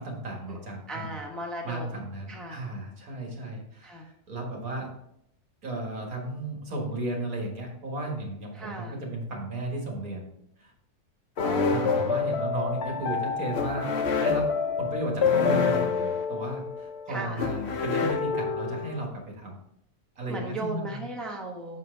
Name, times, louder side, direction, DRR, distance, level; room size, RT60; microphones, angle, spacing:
voice 1, 0.0-1.2 1.6-4.0 4.3-4.9 5.6-10.3 10.6-10.7 11.7-13.9 14.2-14.5 14.8-19.6 20.2-21.1, right 1 dB, 80° right, -1 dB, 2.2 m, -34 dB
voice 2, 0.9-1.9 2.3-2.6 3.8-4.1 8.5-9.0 11.4-12.2 17.1-17.5 20.3-21.8, right 1 dB, ahead, 0 dB, 0.8 m, -37 dB
sound 1, 11.4-19.1, left 5 dB, 55° left, 0.9 m, -27 dB
7.0 x 5.5 x 3.8 m, 0.74 s
omnidirectional pair, 1.5 m